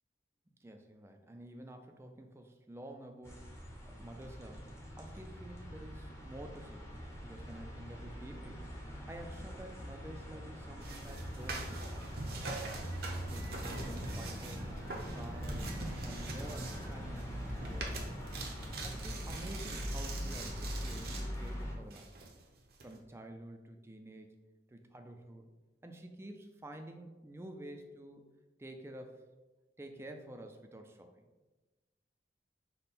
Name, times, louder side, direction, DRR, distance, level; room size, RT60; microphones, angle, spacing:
voice 1, 0.6-12.0 12.4-12.8 13.3-14.7 15.1-18.1 18.8-22.1 22.8-24.3 24.7-25.5 25.8-28.2 28.6-29.2 29.8-31.2, right 1 dB, 15° right, 5 dB, 0.3 m, -50 dB
sound 1, 3.2-21.7, equal, 15° left, 0.7 m, -42 dB
sound 2, 10.7-18.7, right 2 dB, 85° right, 1.3 m, -61 dB
sound 3, 10.8-21.5 21.9-22.9, right 2 dB, 55° right, 0.6 m, -44 dB
5.3 x 2.1 x 4.1 m, 1.2 s
head